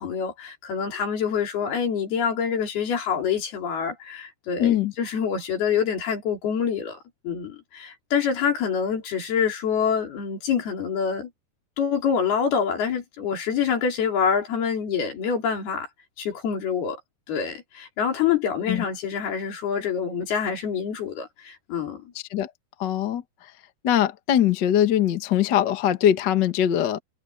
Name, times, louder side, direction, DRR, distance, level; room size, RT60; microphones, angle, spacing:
voice 1, 0.0-7.0 7.2-11.3 11.8-15.9 16.2-17.0 17.3-22.1, left 7 dB, 90° left, 5.8 m, -26 dB
voice 2, 4.6-4.9 18.7-18.8 22.3-22.5 22.8-23.2 23.8-27.0, left 10 dB, 70° left, 1.0 m, -21 dB
omnidirectional pair, 4.3 m